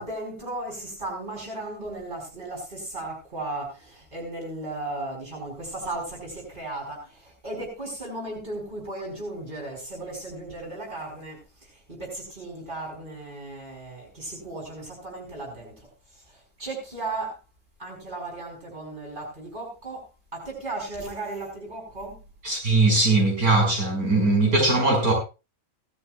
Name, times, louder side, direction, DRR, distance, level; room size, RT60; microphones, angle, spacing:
voice 1, 0.0-15.7 16.1-17.4 17.8-20.1 20.3-22.2, right 2 dB, 35° right, 5.5 m, -36 dB
voice 2, 22.4-25.1, right 2 dB, 85° right, 6.4 m, -20 dB
18.5 x 13.0 x 2.4 m
omnidirectional pair, 1.5 m